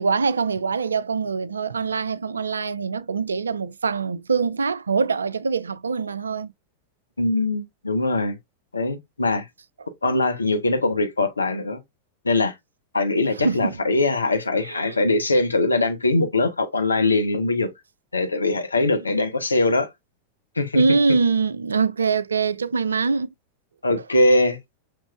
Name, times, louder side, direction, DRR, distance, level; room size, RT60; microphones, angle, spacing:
voice 1, 0.0-6.5 13.3-13.8 14.6-15.0 18.8-19.1 20.7-23.3, right 4 dB, 75° right, 0.3 m, -23 dB
voice 2, 7.2-8.4 8.7-9.4 10.0-11.8 12.2-12.5 12.9-17.7 18.1-19.9 20.6-20.8 23.8-24.6, left 2 dB, 80° left, 0.7 m, -21 dB
6.0 x 3.0 x 2.2 m
figure-of-eight pair, 90°, 0 cm